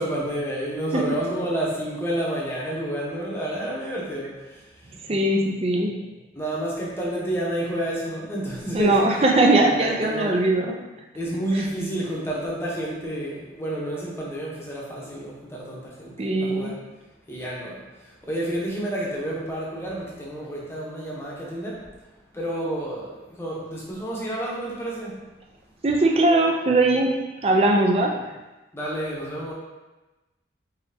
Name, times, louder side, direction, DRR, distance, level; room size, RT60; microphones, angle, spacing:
voice 1, 0.0-4.3 6.3-9.2 9.6-10.3 11.1-16.1 16.4-16.7 17.3-17.8 18.3-21.8 22.3-23.1 23.4-25.1 28.7-29.5, right 1 dB, 15° left, -5 dB, 0.9 m, -29 dB
voice 2, 5.1-6.0 8.7-10.7 16.2-16.8 25.8-27.1 27.4-28.2, right 2 dB, 35° right, 1 dB, 0.5 m, -20 dB
4.0 x 4.0 x 2.8 m, 1.1 s
head